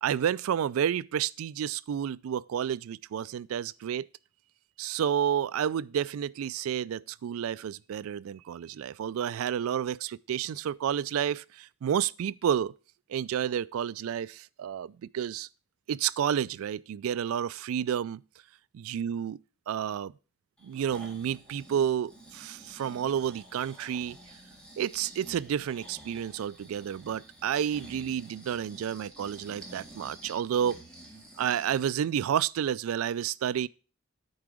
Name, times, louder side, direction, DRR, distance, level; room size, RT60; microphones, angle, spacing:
voice 1, 0.0-4.1 4.8-12.7 13.1-15.5 15.9-18.2 18.7-19.4 19.7-20.1 20.6-24.2 24.8-30.8 31.4-33.7, right 9 dB, 80° right, 0.3 m, -30 dB
Breathing, 20.6-32.0 32.4-32.5, right 1 dB, 5° left, 2.0 m, -50 dB
9.7 x 4.7 x 4.9 m
head